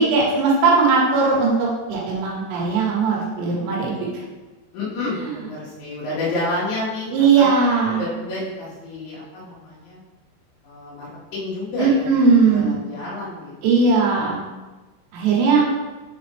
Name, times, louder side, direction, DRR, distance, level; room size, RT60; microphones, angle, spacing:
voice 1, 0.0-4.1 5.2-5.3 7.1-8.0 11.8-12.8 13.6-14.4 15.1-15.6, right 4 dB, 70° right, -3 dB, 2.7 m, -18 dB
voice 2, 3.3-4.0 4.7-7.5 7.9-10.0 10.6-12.1 12.5-13.5, left 2 dB, 70° left, -10 dB, 4.0 m, -30 dB
8.0 x 4.1 x 3.4 m, 1.2 s
omnidirectional pair, 6.0 m